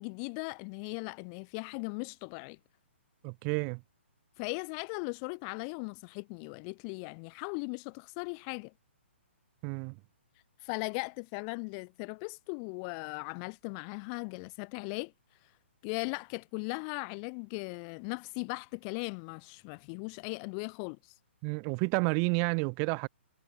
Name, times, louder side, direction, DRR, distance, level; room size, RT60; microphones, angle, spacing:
voice 1, 0.0-2.6 4.4-8.7 10.6-15.1 15.8-21.1, left 40 dB or more, 25° left, 0.4 m, -38 dB
voice 2, 3.2-3.8 9.6-10.0 21.4-23.1, right 40 dB or more, 30° right, 1.4 m, -30 dB
hypercardioid pair, 150°, 7 cm